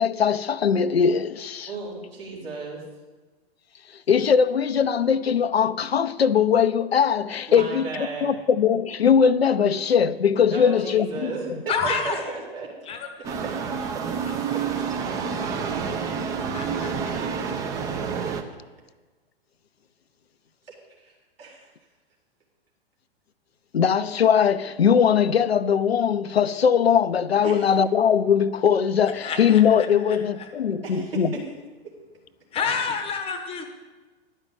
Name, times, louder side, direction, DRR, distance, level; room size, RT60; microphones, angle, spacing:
voice 1, 0.0-1.7 4.1-11.3 23.7-31.3, left 7 dB, 75° left, 0.5 m, -20 dB
voice 2, 1.7-2.8 7.5-8.4 10.5-11.5 11.8-12.7 14.5-14.6 21.4-21.6 27.4-27.7 30.8-31.2, right 3 dB, 65° right, 3.7 m, -34 dB
voice 3, 11.7-12.3 12.8-13.1 14.2-14.6 16.5-17.2 29.2-30.5 32.5-33.6, left 5 dB, 20° left, 0.8 m, -29 dB
sound 1, 13.2-18.4, right 6 dB, 10° right, 0.4 m, -28 dB
11.5 x 5.5 x 8.1 m
figure-of-eight pair, 105°, 31 cm